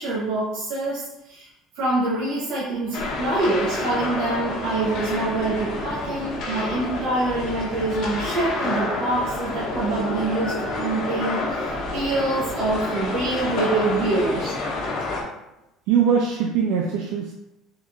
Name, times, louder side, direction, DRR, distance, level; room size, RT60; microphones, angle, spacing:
voice 1, 0.0-1.5 1.7-11.4 11.9-14.5, right 2 dB, 70° right, -6 dB, 1.2 m, -25 dB
sound 1, 2.9-15.2, left 2 dB, 50° left, 1.0 m, -29 dB
voice 2, 15.9-17.3, right 7 dB, 90° right, 0 dB, 0.5 m, -21 dB
3.9 x 3.1 x 3.5 m, 0.89 s
cardioid pair, 175°, 0 cm